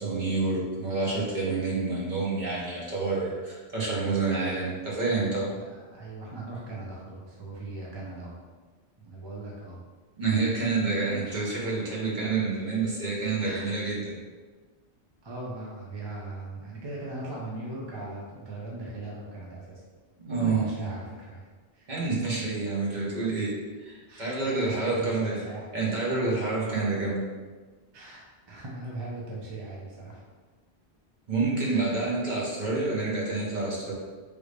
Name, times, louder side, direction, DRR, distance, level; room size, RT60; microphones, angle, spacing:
voice 1, 0.0-5.5 10.2-14.2 20.2-20.6 21.9-23.5 23.8-25.4 25.7-27.2 31.3-33.9, right 3 dB, 50° right, -5 dB, 0.9 m, -28 dB
voice 2, 5.5-8.3 9.0-9.8 13.4-13.7 15.2-19.8 20.3-21.4 21.7-21.9 24.1-25.7 27.9-30.2 31.6-32.0, right 2 dB, 30° right, -5 dB, 0.5 m, -39 dB
3.3 x 2.5 x 3.1 m, 1.4 s
omnidirectional pair, 1.1 m